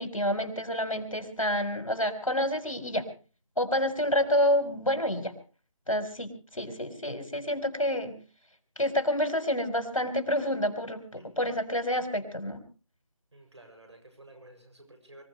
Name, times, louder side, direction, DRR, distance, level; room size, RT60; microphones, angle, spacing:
voice 1, 0.0-3.1 3.6-5.3 5.9-8.2 8.8-12.6, left 1 dB, 70° left, 8 dB, 4.0 m, -28 dB
voice 2, 13.3-15.3, right 1 dB, 55° right, 5 dB, 7.3 m, -52 dB
25.5 x 16.0 x 3.3 m, 0.36 s
figure-of-eight pair, 165°, 17 cm